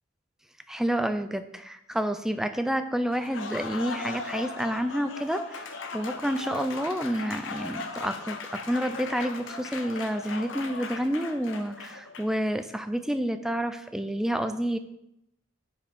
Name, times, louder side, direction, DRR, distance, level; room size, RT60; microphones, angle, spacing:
voice 1, 0.7-14.8, equal, ahead, 9 dB, 0.4 m, -29 dB
Applause, 3.1-12.5, left 4 dB, 70° left, 0.8 m, -38 dB
7.1 x 5.0 x 5.2 m, 0.82 s
head